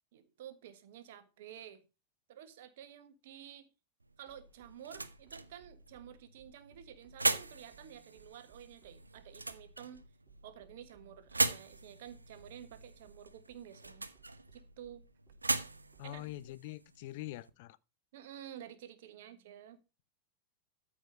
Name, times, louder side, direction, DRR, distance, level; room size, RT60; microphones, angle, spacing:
voice 1, 0.1-1.8 2.3-3.7 4.2-10.0 10.4-14.1 14.5-15.0 16.0-16.3 18.1-19.8, right 10 dB, 55° right, 1.4 m, -51 dB
sound 1, 4.0-17.5, right 3 dB, 80° right, 0.7 m, -40 dB
sound 2, 4.3-16.5, right 2 dB, 25° right, 3.9 m, -60 dB
voice 2, 16.0-17.8, left 16 dB, 50° left, 0.5 m, -44 dB
13.0 x 4.9 x 5.1 m
figure-of-eight pair, 90°, 0 cm